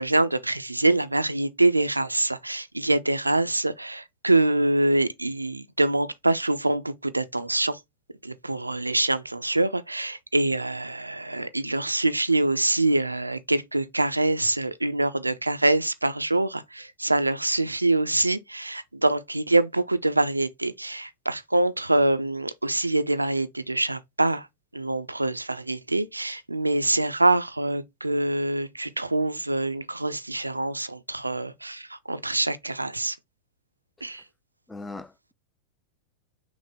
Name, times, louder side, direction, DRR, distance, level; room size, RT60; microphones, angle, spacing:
voice 1, 0.0-7.8 8.2-24.5 24.7-33.2 34.0-34.2, right 2 dB, 85° right, 0.4 m, -25 dB
voice 2, 34.7-35.3, left 3 dB, 10° left, 0.3 m, -41 dB
6.0 x 2.1 x 3.4 m
figure-of-eight pair, 90°, 0 cm